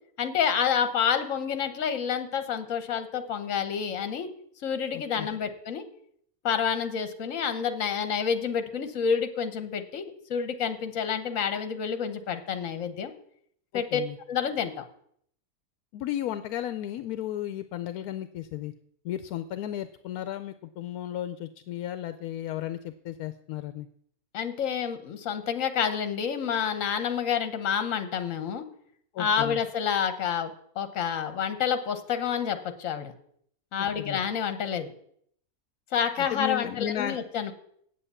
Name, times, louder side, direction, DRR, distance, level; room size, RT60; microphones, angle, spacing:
voice 1, 0.2-4.3 4.6-5.8 6.4-13.1 13.7-14.0 14.3-14.8 24.3-28.7 29.2-33.1 33.7-34.9 35.9-37.5, left 7 dB, 60° left, 10 dB, 1.3 m, -28 dB
voice 2, 4.9-5.3 13.7-14.2 15.9-18.7 19.0-23.9 29.1-29.6 34.0-34.2 36.2-37.2, left 12 dB, 80° left, 11 dB, 1.1 m, -34 dB
8.3 x 7.8 x 8.1 m, 0.67 s
omnidirectional pair, 1.6 m